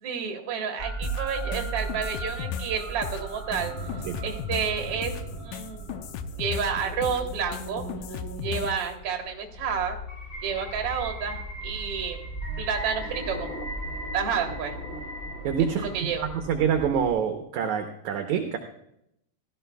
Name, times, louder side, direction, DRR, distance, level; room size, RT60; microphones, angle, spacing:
voice 1, 0.0-3.7 4.2-5.2 5.5-5.8 6.3-7.8 8.1-10.0 10.4-12.3 12.6-13.5 14.1-14.7 15.8-16.3, right 6 dB, 50° right, 3 dB, 2.1 m, -30 dB
sound 1, 0.8-17.1, right 2 dB, 20° left, 1.6 m, -37 dB
sound 2, 1.0-8.9, left 6 dB, 75° left, 2.1 m, -36 dB
voice 2, 15.4-15.9 16.3-18.6, right 8 dB, 70° right, 5 dB, 1.9 m, -26 dB
16.5 x 13.0 x 2.3 m, 0.76 s
omnidirectional pair, 4.0 m